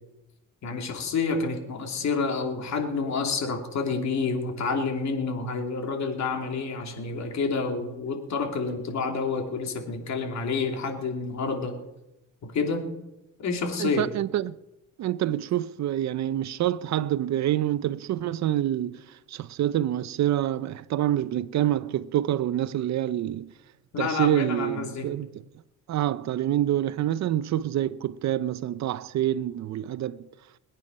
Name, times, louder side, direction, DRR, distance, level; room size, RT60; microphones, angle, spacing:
voice 1, 0.6-11.8 12.4-12.9 13.4-14.1 23.9-25.1, left 4 dB, 65° left, 3.0 m, -29 dB
voice 2, 13.8-14.5 15.0-23.5 24.0-25.3 25.9-30.3, right 12 dB, 65° right, 0.7 m, -27 dB
21.5 x 9.2 x 5.4 m
cardioid pair, 90°, 30 cm